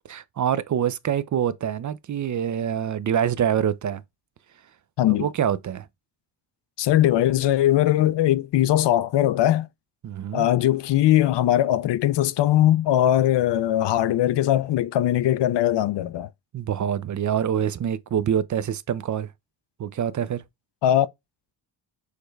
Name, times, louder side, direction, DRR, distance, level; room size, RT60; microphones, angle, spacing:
voice 1, 0.1-4.0 5.1-5.9 10.0-10.5 16.5-19.3 19.8-20.4, right 9 dB, 45° right, 0.4 m, -25 dB
voice 2, 6.8-9.7 10.3-16.3 20.8-21.1, left 13 dB, 70° left, 0.5 m, -20 dB
6.5 x 2.2 x 3.2 m
cardioid pair, 80°, 43 cm